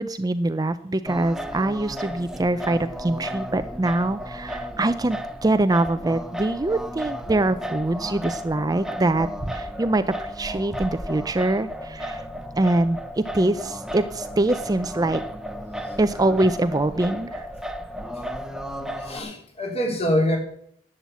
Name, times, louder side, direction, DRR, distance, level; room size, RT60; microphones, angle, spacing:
voice 1, 0.0-12.2 12.6-15.2 16.0-17.5, right 2 dB, 20° right, 12 dB, 0.5 m, -24 dB
Singing, 1.1-19.2, equal, 5° right, 0.8 m, -34 dB
voice 2, 19.0-20.4, equal, 35° left, 2 dB, 3.3 m, -24 dB
11.5 x 8.8 x 8.3 m, 0.67 s
head